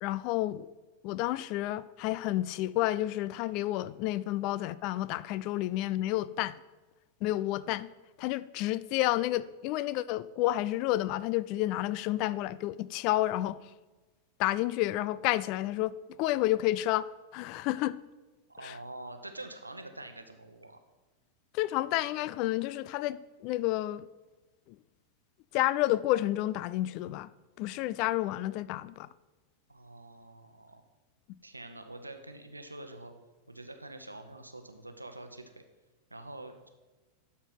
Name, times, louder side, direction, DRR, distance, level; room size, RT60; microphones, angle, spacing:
voice 1, 0.0-0.7 1.0-6.6 7.2-7.9 8.2-13.6 14.4-15.9 16.2-18.0 18.6-18.7 21.5-24.1 25.5-27.3 27.6-29.1, left 15 dB, 45° left, 0.3 m, -30 dB
voice 2, 18.5-20.8 29.7-30.8 31.4-33.1 33.5-35.6 36.1-36.7, right 2 dB, 85° right, 0.8 m, -46 dB
12.0 x 4.4 x 5.8 m
figure-of-eight pair, 90°, 0 cm